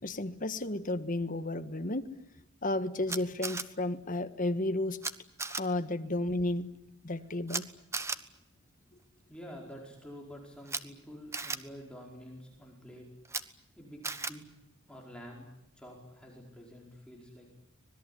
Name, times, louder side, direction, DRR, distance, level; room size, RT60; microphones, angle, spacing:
voice 1, 0.0-2.1 2.6-5.0 5.6-6.7 7.0-7.7, left 2 dB, 40° left, 8 dB, 1.6 m, -32 dB
Camera, 3.1-3.6 5.0-5.1 5.4-5.6 7.5-7.6 7.9-8.2 10.6-10.8 11.3-11.6 13.2-13.4 14.0-14.3, right 4 dB, 15° right, 1.1 m, -34 dB
voice 2, 9.3-13.0 13.8-14.4 14.9-15.5 15.7-17.5, equal, 5° left, -1 dB, 4.9 m, -48 dB
25.5 x 20.5 x 10.0 m, 0.89 s
head